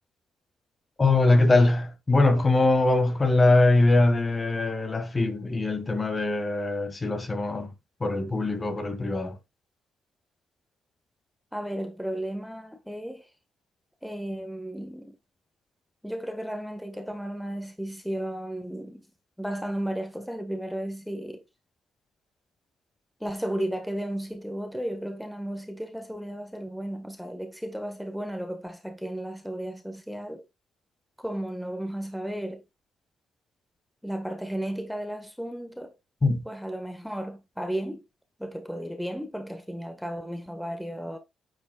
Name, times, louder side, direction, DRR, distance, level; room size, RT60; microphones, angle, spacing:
voice 1, 1.0-7.7 8.0-9.4 36.2-36.4, left 2 dB, 25° left, 1.6 m, -22 dB
voice 2, 11.5-13.3 14.0-15.2 16.0-19.0 19.4-21.4 23.2-30.4 31.2-32.6 34.0-35.9 36.4-38.0 38.4-41.2, right 1 dB, ahead, 1.4 m, -34 dB
9.7 x 7.3 x 2.3 m
cardioid pair, 90°, 0 cm